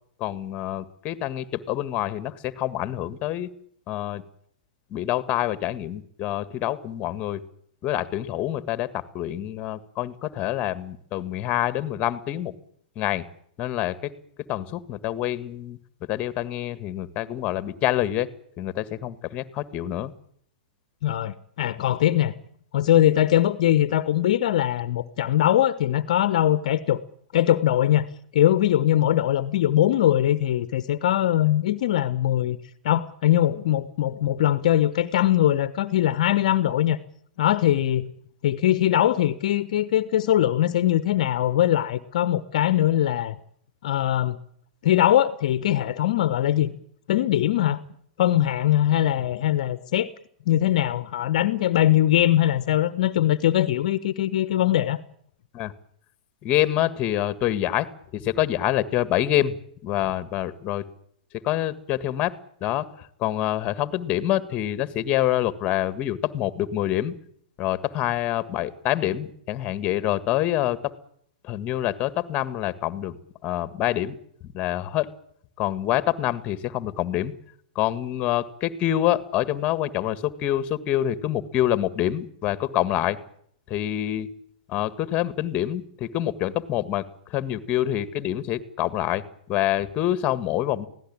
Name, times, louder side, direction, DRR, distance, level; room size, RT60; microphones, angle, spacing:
voice 1, 0.2-3.5 3.9-4.2 4.9-7.4 7.8-12.5 13.0-13.3 13.6-14.1 14.5-15.8 16.1-18.3 18.6-20.1 55.5-55.7 56.4-59.6 59.8-60.9 61.4-62.3 62.6-67.1 67.6-70.9 71.4-73.2 73.4-74.2 74.4-75.1 75.6-77.3 77.8-83.2 83.7-84.3 84.7-89.2 89.5-90.9, left 13 dB, 30° left, 14 dB, 1.7 m, -26 dB
voice 2, 21.0-22.4 22.7-27.0 27.3-28.1 28.3-32.6 32.8-37.0 37.4-38.1 38.4-43.4 43.8-44.4 44.8-46.7 47.1-47.8 48.2-50.1 50.5-55.0, left 12 dB, 55° left, 14 dB, 1.1 m, -21 dB
24.0 x 17.0 x 8.8 m, 0.67 s
figure-of-eight pair, 110°, 4 cm